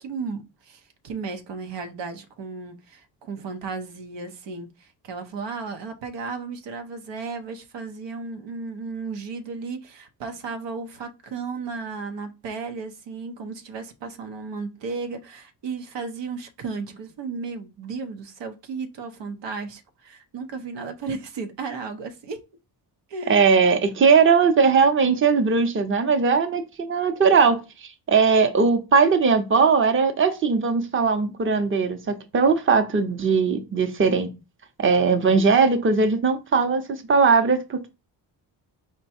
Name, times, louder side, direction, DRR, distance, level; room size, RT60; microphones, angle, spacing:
voice 1, 0.0-22.4 23.1-23.4, right 4 dB, 85° right, 0.8 m, -34 dB
voice 2, 23.3-34.3 34.8-37.9, right 5 dB, 30° right, 0.7 m, -19 dB
4.6 x 2.2 x 4.2 m
cardioid pair, 95°, 42 cm